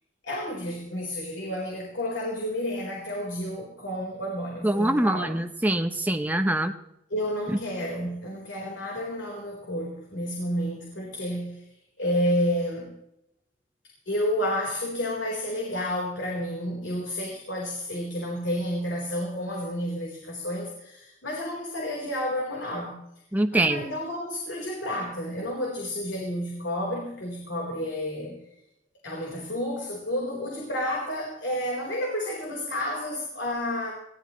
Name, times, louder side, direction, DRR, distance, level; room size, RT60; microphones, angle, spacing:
voice 1, 0.2-5.3 7.1-11.7 12.0-12.9 14.1-23.0 23.5-28.4 29.0-33.9, equal, 75° left, -1 dB, 4.1 m, -30 dB
voice 2, 4.6-6.7 7.5-7.6 23.3-23.8, right 1 dB, 10° right, 6 dB, 0.8 m, -24 dB
21.5 x 16.5 x 3.1 m, 0.81 s
head